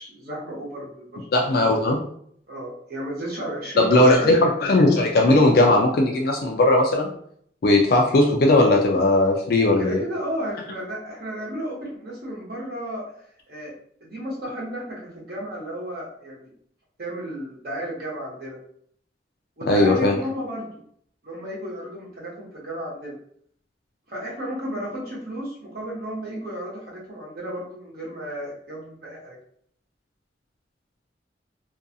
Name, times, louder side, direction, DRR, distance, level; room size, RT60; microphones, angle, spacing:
voice 1, 0.0-1.3 2.5-4.3 9.8-13.7 14.0-16.5 17.0-18.6 19.6-20.7 21.2-23.1 24.1-29.4, equal, 55° right, -4 dB, 1.0 m, -33 dB
voice 2, 1.3-2.0 3.8-7.1 7.6-10.0 19.7-20.2, left 2 dB, 55° left, 1 dB, 0.4 m, -18 dB
2.5 x 2.3 x 2.6 m, 0.63 s
head